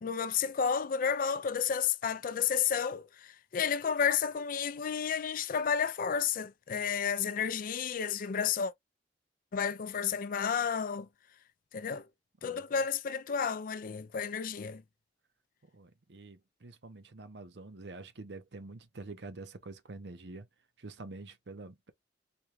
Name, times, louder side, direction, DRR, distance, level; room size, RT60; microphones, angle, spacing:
voice 1, 0.0-8.7 9.5-11.1 11.7-12.1 12.4-14.8, left 7 dB, 50° left, 0.4 m, -31 dB
voice 2, 12.4-12.8 15.6-20.5 20.8-21.9, right 3 dB, 70° right, 0.7 m, -47 dB
4.3 x 2.3 x 3.2 m
head